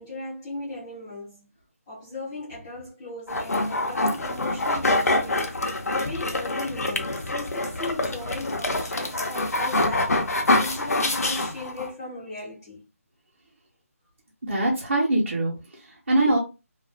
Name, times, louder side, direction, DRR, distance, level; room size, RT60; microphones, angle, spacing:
voice 1, 0.0-1.5 1.9-5.6 6.0-10.1 10.6-12.8, left 2 dB, 10° left, 0.4 m, -37 dB
sound 1, 3.3-11.9, left 2 dB, 85° left, 0.6 m, -25 dB
voice 2, 14.4-16.4, right 1 dB, 50° right, 0.8 m, -23 dB
2.4 x 2.3 x 2.4 m
figure-of-eight pair, 170°, 8 cm